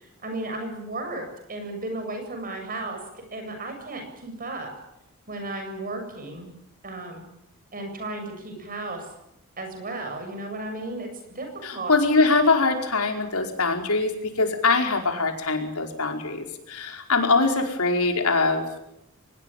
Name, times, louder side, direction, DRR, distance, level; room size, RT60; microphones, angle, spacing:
voice 1, 0.0-4.7 5.3-6.5 6.8-7.2 7.7-9.1 9.6-11.9, right 2 dB, 40° right, 5 dB, 7.8 m, -34 dB
voice 2, 11.6-18.7, left 3 dB, 80° left, 3 dB, 5.0 m, -23 dB
24.5 x 20.5 x 9.3 m, 0.84 s
head